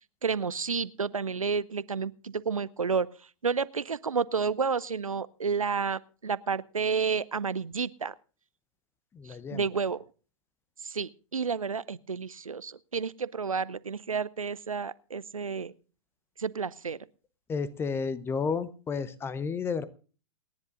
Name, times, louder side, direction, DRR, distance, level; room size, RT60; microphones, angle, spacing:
voice 1, 0.2-3.1 3.4-8.1 9.5-10.0 10.8-15.7 16.4-17.0, right 5 dB, 80° right, 19 dB, 0.6 m, -30 dB
voice 2, 9.1-9.7 17.5-19.9, left 5 dB, 15° left, 18 dB, 0.8 m, -32 dB
28.0 x 10.5 x 2.5 m, 0.38 s
figure-of-eight pair, 110°, 17 cm